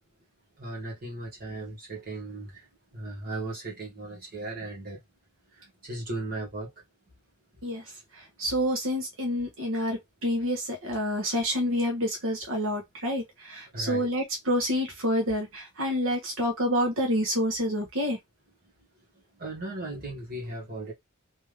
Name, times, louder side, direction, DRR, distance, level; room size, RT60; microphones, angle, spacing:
voice 1, 0.6-2.5 2.9-5.0 5.8-6.7 13.7-14.1 19.4-20.9, right 2 dB, 45° right, 1.8 m, -36 dB
voice 2, 8.4-18.2, equal, 65° right, 1.3 m, -28 dB
3.6 x 3.0 x 3.3 m
head